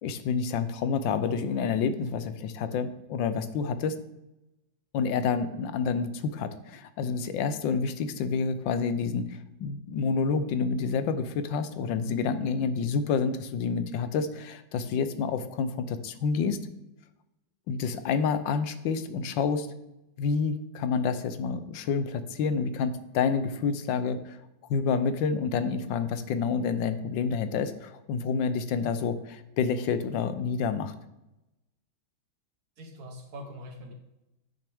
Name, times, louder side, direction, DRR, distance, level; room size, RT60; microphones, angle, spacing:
voice 1, 0.0-3.9 4.9-16.6 17.7-19.7 20.2-24.4 24.7-30.9, left 5 dB, 75° left, 11 dB, 1.3 m, -28 dB
voice 2, 32.8-33.9, equal, 55° right, 3 dB, 1.6 m, -43 dB
10.0 x 6.3 x 3.5 m, 0.91 s
omnidirectional pair, 2.1 m